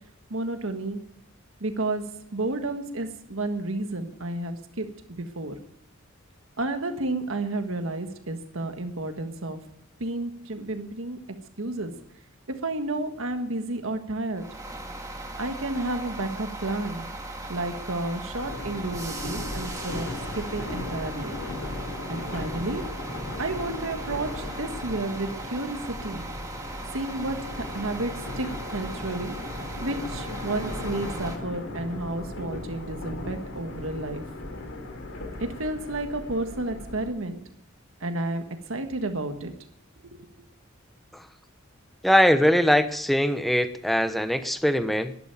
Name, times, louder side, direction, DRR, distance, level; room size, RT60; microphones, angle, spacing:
voice 1, 0.3-1.0 1.6-5.5 6.6-9.6 10.0-11.2 11.6-12.0 12.5-14.5 15.4-17.1 17.5-20.1 20.3-21.4 22.1-22.9 23.4-26.2 26.9-29.4 29.8-34.2 35.4-37.4 38.0-39.5 40.0-40.3, right 2 dB, 75° right, 6 dB, 1.6 m, -31 dB
sound 1, 14.3-31.4, right 1 dB, 15° right, 2.0 m, -38 dB
sound 2, 18.4-37.1, left 2 dB, 90° left, 3.2 m, -37 dB
voice 2, 42.0-45.2, equal, ahead, 10 dB, 0.9 m, -22 dB
11.5 x 11.5 x 9.0 m, 0.73 s
head